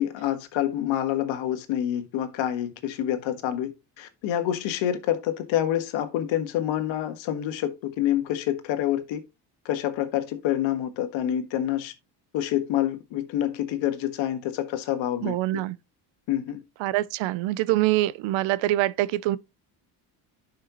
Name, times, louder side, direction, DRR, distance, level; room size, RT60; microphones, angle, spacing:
voice 1, 0.0-9.2 9.6-11.9 12.3-15.4 16.3-16.6, left 11 dB, 75° left, 1.5 m, -27 dB
voice 2, 15.2-15.8 16.8-19.4, right 16 dB, 70° right, 0.7 m, -24 dB
10.5 x 5.6 x 2.9 m
cardioid pair, 130°, 47 cm